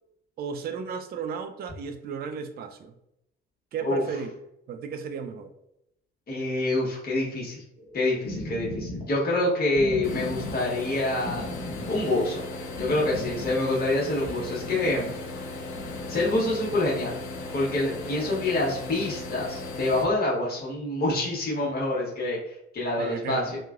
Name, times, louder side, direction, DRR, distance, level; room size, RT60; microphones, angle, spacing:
voice 1, 0.4-3.0 3.7-4.3 4.7-5.5 23.0-23.5, right 6 dB, 30° right, 7 dB, 0.4 m, -34 dB
voice 2, 6.3-7.6 7.9-11.5 11.9-12.4 12.8-15.1 16.1-17.2 17.5-23.6, left 2 dB, 30° left, -4 dB, 1.2 m, -26 dB
sound 1, 7.8-15.0 15.6-16.5 17.2-17.3, left 1 dB, 75° right, 0.9 m, -39 dB
sound 2, 10.0-20.0, left 2 dB, 55° left, 0.8 m, -37 dB
3.0 x 2.2 x 2.4 m, 0.81 s
figure-of-eight pair, 50°, 33 cm